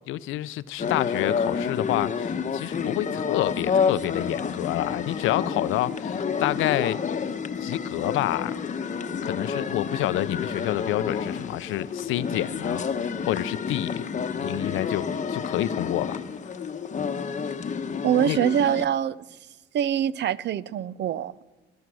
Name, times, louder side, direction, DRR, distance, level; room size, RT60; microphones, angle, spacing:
voice 1, 0.1-7.0 7.6-8.6 9.2-12.9 13.3-14.0 14.3-16.2 18.2-18.4, left 15 dB, 90° left, 0.5 m, -28 dB
sound 1, 0.8-18.8, left 6 dB, 40° left, 0.9 m, -29 dB
voice 2, 18.0-19.2 19.7-21.3, right 10 dB, 60° right, 0.6 m, -24 dB
20.0 x 11.5 x 6.2 m
cardioid pair, 90°, 20 cm